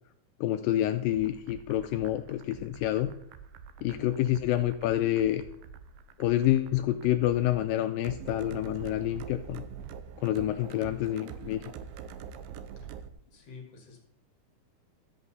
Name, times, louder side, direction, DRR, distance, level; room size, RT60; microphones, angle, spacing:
voice 1, 0.4-3.1 3.8-5.4 6.2-9.6 10.2-11.6, left 13 dB, 85° left, 8 dB, 2.0 m, -28 dB
sound 1, 1.1-13.1, right 7 dB, 80° right, 2.2 m, -45 dB
voice 2, 13.3-14.0, left 5 dB, 45° left, 2 dB, 2.4 m, -49 dB
13.0 x 7.9 x 4.1 m, 0.74 s
omnidirectional pair, 4.5 m